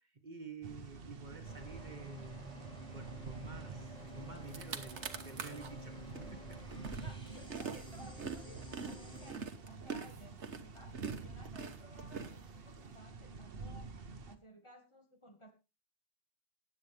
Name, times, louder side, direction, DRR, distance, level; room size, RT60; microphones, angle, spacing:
voice 1, 0.0-2.5 2.9-6.8, right 4 dB, 40° right, 4 dB, 1.8 m, -50 dB
sound 1, 0.6-14.4, right 4 dB, 55° right, 1.2 m, -49 dB
sound 2, 1.4-9.3, equal, 5° left, 4.1 m, -51 dB
sound 3, 4.1-4.2 4.4-5.7 6.1-12.9, right 5 dB, 90° right, 1.5 m, -44 dB
voice 2, 6.7-10.4 10.7-13.9 14.3-15.5, equal, 25° left, 3 dB, 2.0 m, -57 dB
18.5 x 8.5 x 3.4 m, 0.29 s
omnidirectional pair, 1.1 m